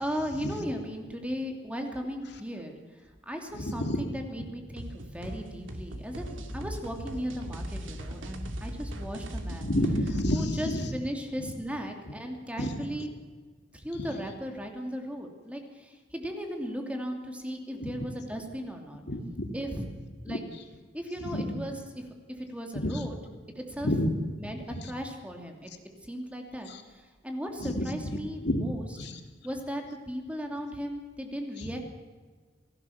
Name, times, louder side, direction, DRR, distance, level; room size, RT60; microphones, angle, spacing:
voice 1, 0.0-9.7 10.3-13.1 13.7-19.0 19.5-19.9 20.2-20.4 20.9-23.1 23.5-23.9 24.4-25.7 26.0-28.9 29.4-31.8, equal, 5° right, 3 dB, 2.8 m, -37 dB
voice 2, 3.5-4.0 9.6-10.9 12.6-12.9 14.0-14.1 17.8-17.9 19.1-19.5 20.3-20.4 21.3-21.5 22.7-23.1 23.8-24.1 24.7-24.8 26.7-26.8 27.6-28.2 28.4-28.7 29.0-29.1 31.6-31.7, left 1 dB, 60° left, 5 dB, 2.6 m, -30 dB
sound 1, 4.8-10.4, equal, 90° right, 2.5 m, -38 dB
28.5 x 17.0 x 7.2 m, 1.5 s
head